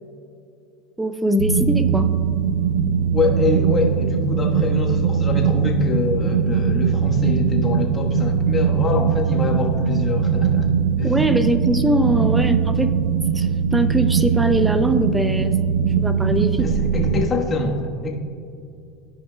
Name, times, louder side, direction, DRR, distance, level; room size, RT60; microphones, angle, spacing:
voice 1, 1.0-2.1 11.0-12.9 13.3-15.5 16.0-16.7, right 1 dB, 10° right, 11 dB, 0.5 m, -21 dB
sound 1, 1.4-17.3, right 7 dB, 75° right, 0.4 m, -21 dB
voice 2, 3.1-10.7 11.0-11.1 16.6-18.1, left 3 dB, 30° left, 0 dB, 1.3 m, -24 dB
14.0 x 5.3 x 2.3 m, 2.5 s
hypercardioid pair, 90°, 0 cm